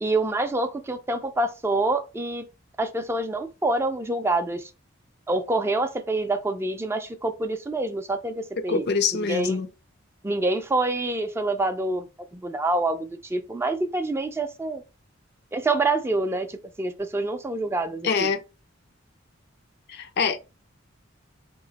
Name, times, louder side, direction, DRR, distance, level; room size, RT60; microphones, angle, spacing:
voice 1, 0.0-2.5 2.8-4.7 5.3-8.8 9.1-9.6 10.2-12.1 12.3-14.8 15.5-18.3, right 2 dB, 15° right, 0.4 m, -26 dB
voice 2, 8.7-9.7 18.0-18.4 19.9-20.4, left 5 dB, 55° left, 0.5 m, -24 dB
4.2 x 2.9 x 2.8 m
head